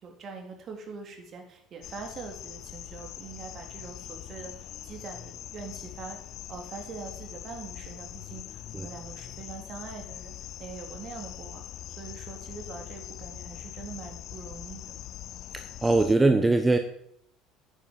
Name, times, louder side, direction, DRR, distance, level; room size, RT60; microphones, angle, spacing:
voice 1, 0.0-6.2 6.5-10.3 10.6-11.6 12.0-15.0, right 5 dB, 45° right, 3 dB, 3.7 m, -43 dB
sound 1, 1.8-16.2, left 12 dB, 55° left, 0.7 m, -42 dB
voice 2, 15.5-16.8, right 2 dB, 15° right, 7 dB, 1.2 m, -22 dB
9.7 x 9.4 x 7.6 m, 0.70 s
hypercardioid pair, 65°, 0 cm